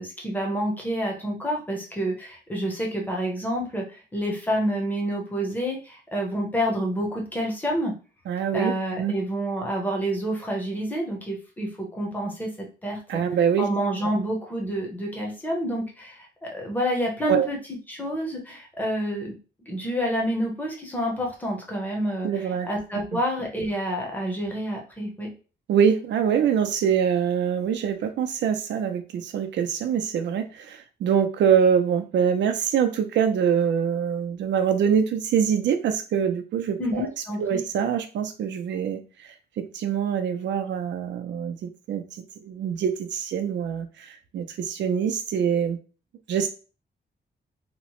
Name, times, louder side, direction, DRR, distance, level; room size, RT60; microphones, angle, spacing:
voice 1, 0.0-7.9 8.5-13.2 13.6-17.6 17.9-19.3 19.7-25.3 36.8-37.6, equal, 10° left, -1 dB, 0.7 m, -28 dB
voice 2, 8.3-9.1 13.1-13.7 17.3-17.5 22.2-22.7 23.1-23.2 25.7-37.1 37.4-39.0 39.6-42.0 42.4-45.8 46.3-46.5, right 8 dB, 85° right, 7 dB, 0.5 m, -24 dB
2.9 x 2.0 x 2.9 m, 0.35 s
wide cardioid pair, 175°, 18 cm